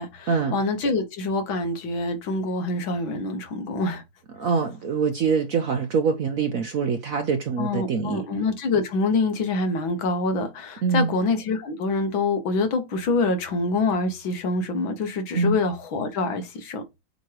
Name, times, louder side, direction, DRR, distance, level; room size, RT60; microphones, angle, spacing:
voice 1, 0.0-4.0 7.6-16.8, left 3 dB, 75° left, 2.0 m, -26 dB
voice 2, 4.4-8.2 10.8-11.1 15.3-15.6, right 5 dB, 60° right, 0.9 m, -24 dB
7.7 x 3.1 x 4.7 m
omnidirectional pair, 2.2 m